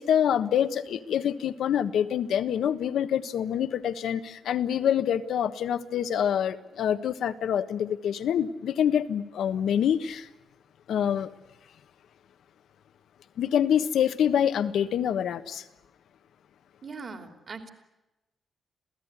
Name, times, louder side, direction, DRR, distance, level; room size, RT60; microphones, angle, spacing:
voice 1, 0.0-10.3 10.9-11.3 13.4-15.6, left 9 dB, 85° left, 1.3 m, -26 dB
voice 2, 16.8-17.7, right 4 dB, 40° right, 3.0 m, -40 dB
27.5 x 16.5 x 9.7 m
wide cardioid pair, 140°, 0 cm